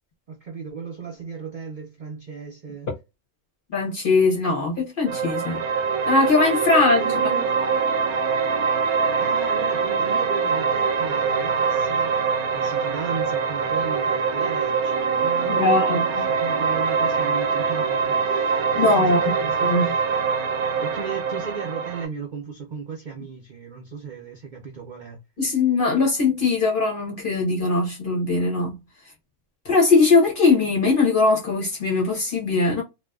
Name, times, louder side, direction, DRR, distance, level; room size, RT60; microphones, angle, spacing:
voice 1, 0.3-2.9 6.7-7.6 9.2-12.2 12.5-20.0 20.8-25.2, right 6 dB, 70° right, 0.4 m, -36 dB
voice 2, 3.7-5.6 6.0-7.0 15.5-16.2 18.7-19.3 19.6-19.9 25.4-28.8 29.6-32.8, left 3 dB, 50° left, 0.7 m, -20 dB
sound 1, 5.1-22.1, right 5 dB, 90° right, 1.1 m, -23 dB
2.5 x 2.2 x 2.2 m
omnidirectional pair, 1.5 m